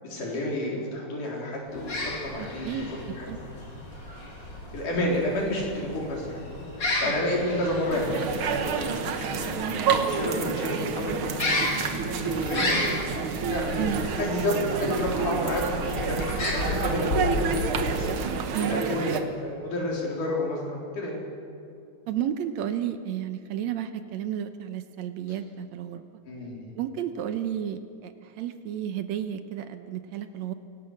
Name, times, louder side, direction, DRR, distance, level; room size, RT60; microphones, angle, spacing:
voice 1, 0.0-3.4 4.7-6.4 6.8-12.9 13.5-18.1 18.6-21.2 26.3-26.7, left 1 dB, 85° left, -2 dB, 5.4 m, -31 dB
sound 1, 1.7-18.4, left 1 dB, 35° left, 3.8 m, -33 dB
voice 2, 2.4-2.9 3.3-3.4 7.0-7.1 13.8-14.0 18.5-19.0 22.1-26.1 26.8-30.5, right 10 dB, 70° right, 9 dB, 2.0 m, -32 dB
sound 2, 7.9-19.2, right 6 dB, 55° right, 1.6 m, -29 dB
23.5 x 18.0 x 6.5 m, 2.5 s
omnidirectional pair, 3.5 m